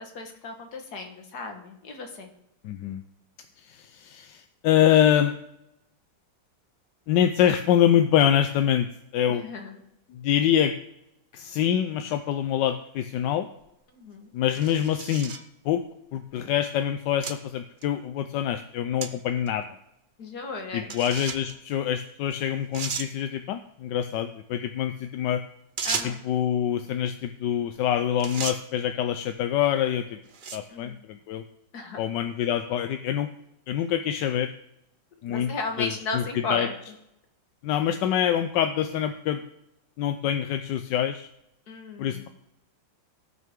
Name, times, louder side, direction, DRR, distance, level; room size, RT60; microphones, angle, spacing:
voice 1, 0.0-2.3 9.3-9.8 13.9-14.3 20.2-20.9 25.8-26.2 30.7-31.0 31.7-32.0 35.3-36.8 41.7-42.3, left 3 dB, 55° left, 4 dB, 2.0 m, -35 dB
voice 2, 2.6-3.0 3.6-5.4 7.1-8.9 9.1-9.5 10.1-10.7 11.3-13.5 14.3-15.3 15.6-15.9 16.1-19.7 20.7-25.4 26.0-30.2 30.5-31.4 32.0-33.3 33.7-34.5 35.2-35.5 35.8-36.7 37.6-39.4 40.0-41.3 42.0-42.3, left 10 dB, 75° left, 8 dB, 1.2 m, -25 dB
sound 1, 13.6-13.7 14.5-15.5 16.3-16.4 17.2-17.4 17.8-17.9 19.0-19.1 19.5-19.6 20.9-21.5 22.3-22.4 22.7-23.1 25.8-26.3 27.7-27.9 28.2-28.6 29.4-29.6 30.3-30.7, right 5 dB, 75° right, 0.4 m, -33 dB
18.0 x 6.2 x 3.6 m, 0.83 s
omnidirectional pair, 2.0 m